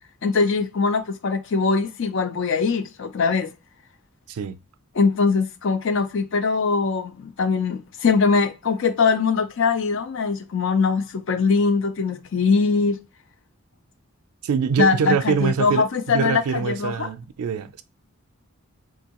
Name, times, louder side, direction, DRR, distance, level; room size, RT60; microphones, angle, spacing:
voice 1, 0.2-3.5 5.0-13.0 14.8-17.1, left 4 dB, 60° left, 0.4 m, -22 dB
voice 2, 4.3-4.6 14.4-17.8, right 6 dB, 90° right, 0.4 m, -24 dB
3.6 x 2.6 x 2.8 m
head